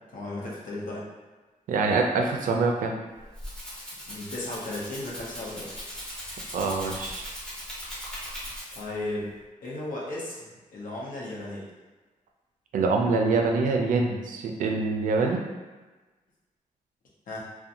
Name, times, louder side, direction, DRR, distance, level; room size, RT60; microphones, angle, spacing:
voice 1, 0.1-1.1 4.1-5.7 8.7-9.3 9.6-10.4 10.7-11.7 17.3-17.4, left 2 dB, 80° left, -5 dB, 0.7 m, -35 dB
voice 2, 1.7-2.9 6.5-7.3 12.7-15.4, right 3 dB, 75° right, 2 dB, 0.4 m, -25 dB
Rattle (instrument), 3.1-9.0, equal, 5° left, 0.6 m, -39 dB
2.5 x 2.1 x 2.8 m, 1.2 s
wide cardioid pair, 170°, 14 cm